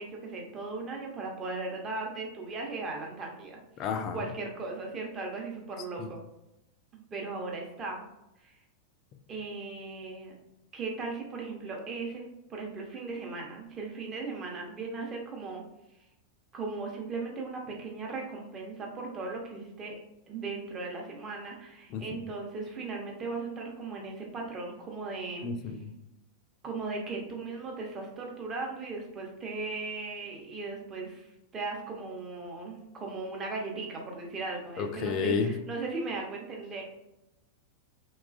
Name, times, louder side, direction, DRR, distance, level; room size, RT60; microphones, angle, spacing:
voice 1, 0.0-6.2 6.9-8.0 8.4-8.5 9.3-10.3 10.7-15.6 16.5-20.0 20.3-25.5 26.6-31.3 31.5-36.8, right 3 dB, 25° right, 0 dB, 0.7 m, -37 dB
voice 2, 3.8-4.2 6.0-6.1 21.9-22.0 25.4-25.9 34.8-35.5, left 6 dB, 35° left, 6 dB, 0.3 m, -31 dB
2.9 x 2.3 x 2.4 m, 0.90 s
figure-of-eight pair, 90°, 0 cm